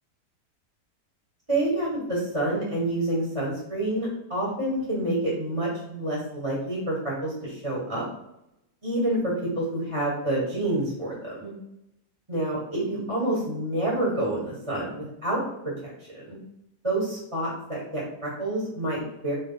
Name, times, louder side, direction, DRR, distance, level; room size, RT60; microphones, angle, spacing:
voice 1, 1.5-8.0 8.8-11.5 12.3-16.4 16.8-19.3, right 1 dB, 20° right, -5 dB, 1.4 m, -28 dB
3.7 x 3.2 x 4.0 m, 0.84 s
omnidirectional pair, 1.8 m